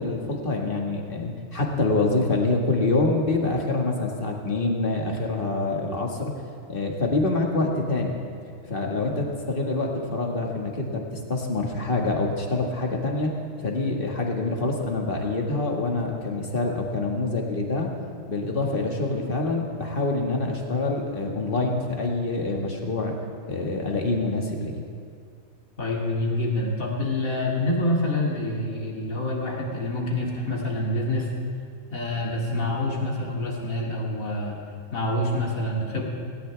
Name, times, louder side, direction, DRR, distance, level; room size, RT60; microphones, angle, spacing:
voice 1, 0.0-6.3 6.7-8.2 8.6-13.3 13.6-17.9 18.3-23.1 23.5-24.8, left 2 dB, 40° left, 0 dB, 2.0 m, -26 dB
voice 2, 25.8-31.3 31.9-34.6 34.9-36.1, left 1 dB, 90° left, -3 dB, 3.0 m, -27 dB
18.5 x 18.0 x 3.4 m, 2.3 s
omnidirectional pair, 1.4 m